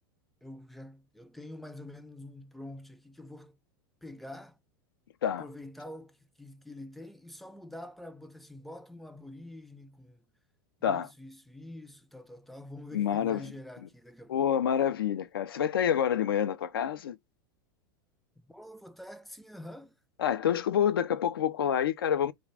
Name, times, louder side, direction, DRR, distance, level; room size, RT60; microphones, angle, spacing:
voice 1, 0.4-3.6 4.0-4.6 5.4-10.2 10.8-14.5 18.5-19.9, left 1 dB, ahead, 0.4 m, -46 dB
voice 2, 12.9-13.5 14.3-17.2 20.2-22.3, left 9 dB, 85° left, 0.4 m, -27 dB
2.5 x 2.1 x 3.2 m
hypercardioid pair, 100°, 12 cm